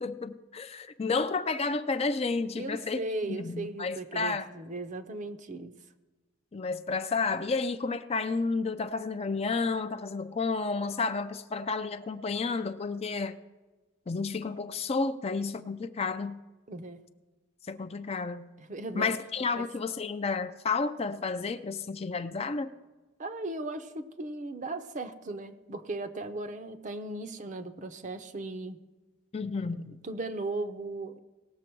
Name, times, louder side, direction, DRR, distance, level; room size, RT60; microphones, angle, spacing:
voice 1, 0.0-4.5 6.5-13.4 14.1-16.4 17.7-18.5 19.0-22.7 29.3-30.0, left 4 dB, 30° left, 10 dB, 0.4 m, -31 dB
voice 2, 2.6-5.7 16.7-17.0 18.6-19.1 19.5-19.6 23.2-28.8 30.0-31.2, right 2 dB, 40° right, 9 dB, 0.6 m, -37 dB
18.0 x 6.9 x 4.5 m, 1.2 s
head